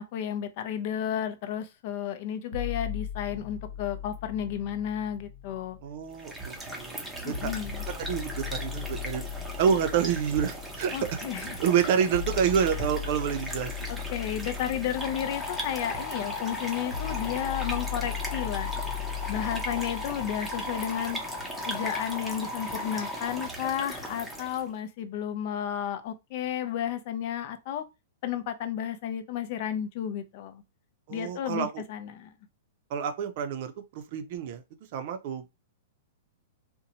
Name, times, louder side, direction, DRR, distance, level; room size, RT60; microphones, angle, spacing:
voice 1, 0.0-5.8 7.2-7.8 10.9-11.6 13.9-18.8 19.3-21.2 21.6-27.8 28.2-30.6 31.1-32.3, left 9 dB, 50° left, 0.5 m, -32 dB
sound 1, 2.5-6.5 7.3-21.3, left 9 dB, 70° left, 1.2 m, -38 dB
voice 2, 5.8-7.5 8.0-9.3 9.6-13.9 31.1-31.8 32.9-34.6 34.9-35.4, right 8 dB, 50° right, 0.5 m, -28 dB
sound 2, 6.1-24.7, right 1 dB, 5° right, 0.6 m, -39 dB
sound 3, 14.9-23.5, left 3 dB, 25° left, 1.1 m, -37 dB
2.6 x 2.1 x 2.8 m
hypercardioid pair, 145°, 0 cm